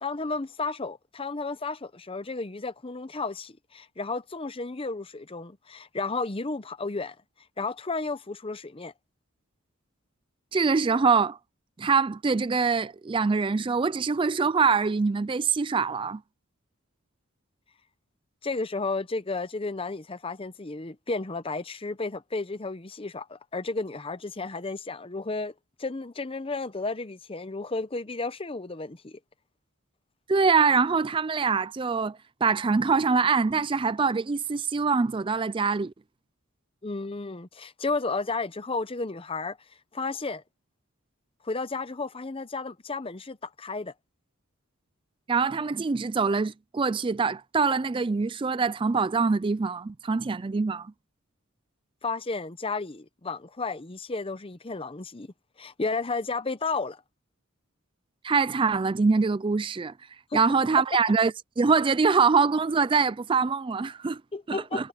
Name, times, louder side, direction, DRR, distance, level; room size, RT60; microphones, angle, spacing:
voice 1, 0.0-7.2 7.6-8.9 18.4-25.5 25.8-29.2 36.8-39.6 39.9-40.4 41.4-43.9 52.0-55.3 55.6-57.0 60.3-60.4 64.3-64.9, left 3 dB, 25° left, 0.8 m, -33 dB
voice 2, 10.5-11.4 11.8-16.2 30.3-35.9 45.3-50.9 58.2-59.9 60.3-64.2 64.5-64.9, right 5 dB, 25° right, 0.4 m, -24 dB
head